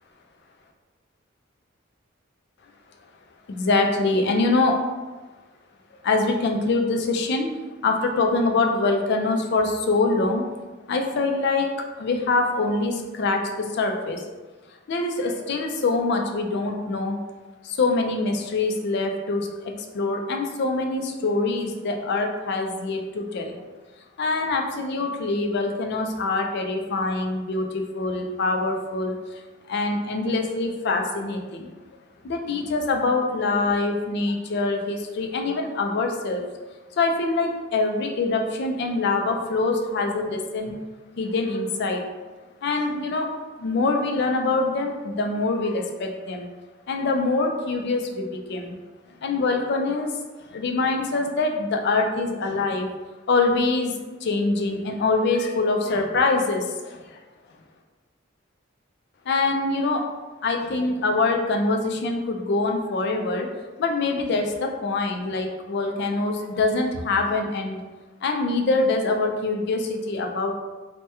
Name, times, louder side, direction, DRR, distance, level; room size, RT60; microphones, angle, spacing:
voice 1, 3.5-4.8 6.0-7.5 7.8-10.4 10.9-14.2 14.9-17.2 17.6-23.6 24.2-29.4 29.7-31.7 32.2-36.4 37.0-40.7 41.2-42.0 42.6-43.3 43.6-46.5 46.9-48.8 49.2-50.1 50.5-52.9 53.3-53.9 54.2-57.0 59.3-60.1 60.4-63.5 63.8-67.8 68.2-70.5, left 3 dB, 55° left, 3 dB, 0.4 m, -24 dB
2.8 x 2.1 x 3.3 m, 1.3 s
head